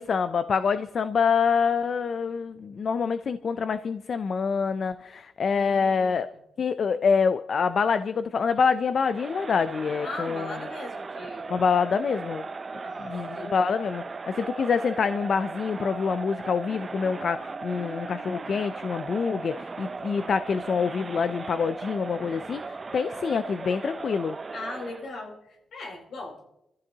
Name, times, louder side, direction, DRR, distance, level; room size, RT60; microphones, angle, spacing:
voice 1, 0.0-6.3 6.6-10.5 11.5-12.5 13.0-24.4, left 6 dB, 55° left, 12 dB, 0.5 m, -26 dB
voice 2, 5.5-6.2 10.0-11.5 12.8-13.7 24.5-26.5, left 2 dB, 75° left, -1 dB, 4.5 m, -39 dB
Crowd, 9.0-25.1, right 4 dB, 35° right, 0.5 m, -37 dB
27.5 x 14.5 x 2.9 m, 0.88 s
cardioid pair, 100°, 0 cm